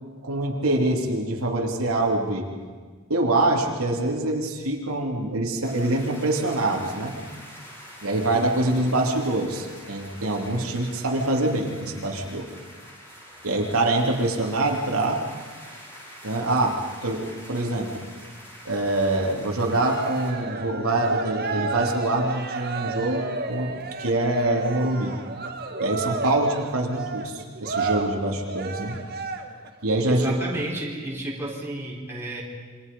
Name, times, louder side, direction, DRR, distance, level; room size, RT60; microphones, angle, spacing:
voice 1, 0.2-2.5 3.1-7.1 8.0-12.5 13.4-15.2 16.2-18.0 18.6-23.7 24.0-25.1 25.8-28.9 29.8-30.3, right 2 dB, 90° right, 0 dB, 3.1 m, -25 dB
sound 1, 5.6-20.3, equal, 10° left, 6.7 m, -45 dB
Cheering, 19.6-29.7, right 3 dB, 45° right, 1.9 m, -32 dB
voice 2, 30.1-32.4, right 1 dB, 10° right, -4 dB, 4.3 m, -31 dB
27.5 x 24.5 x 5.4 m, 1.5 s
head